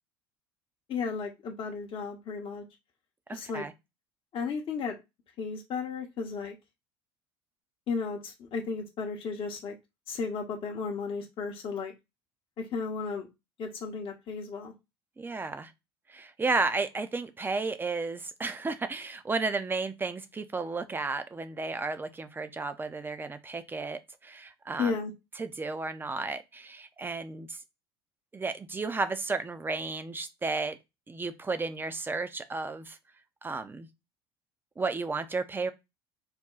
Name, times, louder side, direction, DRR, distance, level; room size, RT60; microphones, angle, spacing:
voice 1, 0.9-2.6 3.3-3.7 4.3-5.0 5.4-6.5 7.9-9.7 10.1-11.9 12.6-13.3 13.6-14.7 24.8-25.1, left 5 dB, 40° left, 0.8 m, -34 dB
voice 2, 3.3-3.7 15.2-15.7 16.1-25.0 25.4-27.6 28.3-30.8 31.1-33.0 33.4-33.9 34.8-35.7, right 3 dB, 15° right, 0.5 m, -33 dB
4.1 x 2.2 x 3.8 m
hypercardioid pair, 70°, 13 cm